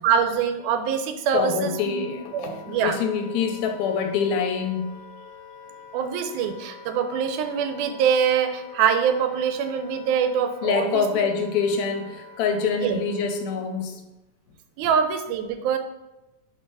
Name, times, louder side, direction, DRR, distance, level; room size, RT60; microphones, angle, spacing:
voice 1, 0.0-2.0 2.3-3.0 5.9-11.3 12.7-13.0 14.8-15.8, right 7 dB, 90° right, 7 dB, 2.1 m, -24 dB
Wind instrument woodwind instrument, 1.2-13.9, left 4 dB, 65° left, 1.9 m, -45 dB
voice 2, 1.3-5.0 10.6-14.0, left 5 dB, 80° left, 4 dB, 2.0 m, -25 dB
4.5 x 4.5 x 4.7 m, 1.0 s
omnidirectional pair, 3.4 m